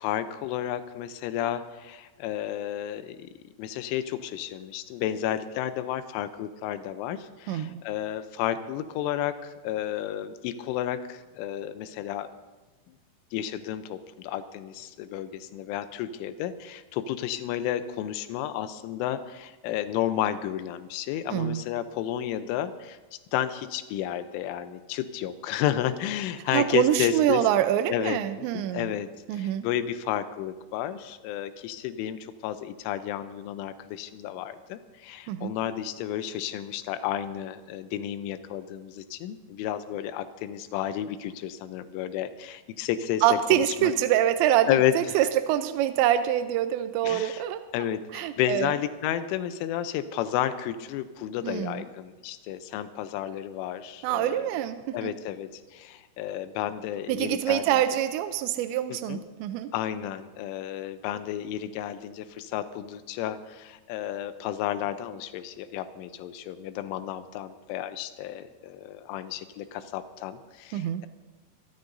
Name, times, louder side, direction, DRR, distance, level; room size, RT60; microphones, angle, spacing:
voice 1, 0.0-3.3 3.6-12.3 13.3-23.0 23.3-27.4 27.9-43.9 44.7-45.2 47.0-47.4 47.7-54.5 54.9-57.8 58.9-59.2 59.7-71.1, left 11 dB, 90° left, 11 dB, 3.2 m, -32 dB
voice 2, 7.5-7.8 21.3-21.6 26.5-28.9 29.3-29.6 35.3-35.5 43.2-44.7 45.0-47.6 48.1-48.7 51.4-51.8 54.0-55.1 57.1-59.7 70.7-71.0, right 11 dB, 85° right, 9 dB, 2.7 m, -25 dB
27.0 x 13.5 x 2.7 m, 1.2 s
omnidirectional pair, 5.5 m